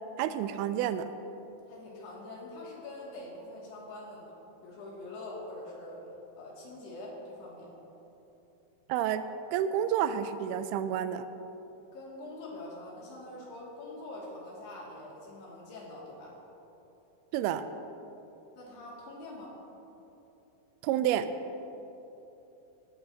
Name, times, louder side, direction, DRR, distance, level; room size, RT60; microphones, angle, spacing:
voice 1, 0.2-1.1 8.9-11.2 17.3-17.6 20.8-21.3, right 10 dB, 85° right, 11 dB, 2.5 m, -29 dB
voice 2, 1.7-4.3 4.6-6.1 6.4-7.7 11.9-16.4 18.6-19.6, left 2 dB, 85° left, -5 dB, 4.6 m, -44 dB
18.5 x 13.5 x 2.9 m, 3.0 s
omnidirectional pair, 4.5 m